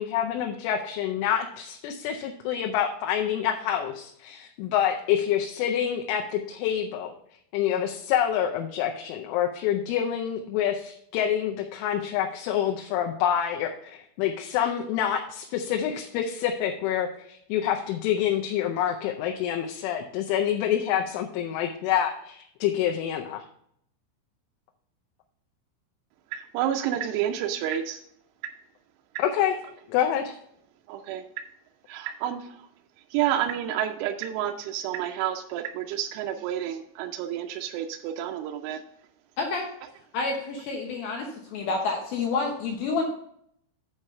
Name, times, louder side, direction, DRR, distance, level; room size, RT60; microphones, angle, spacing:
voice 1, 0.0-7.1 7.5-23.4 29.2-29.5 29.9-30.3, left 9 dB, 85° left, 2 dB, 3.2 m, -27 dB
voice 2, 26.3-28.0 30.9-31.2 31.9-32.6 33.1-38.8, right 10 dB, 85° right, 3 dB, 3.1 m, -29 dB
voice 3, 39.4-39.7 40.1-43.0, left 4 dB, 70° left, 0 dB, 2.4 m, -29 dB
8.7 x 4.8 x 5.6 m, 0.68 s
omnidirectional pair, 5.4 m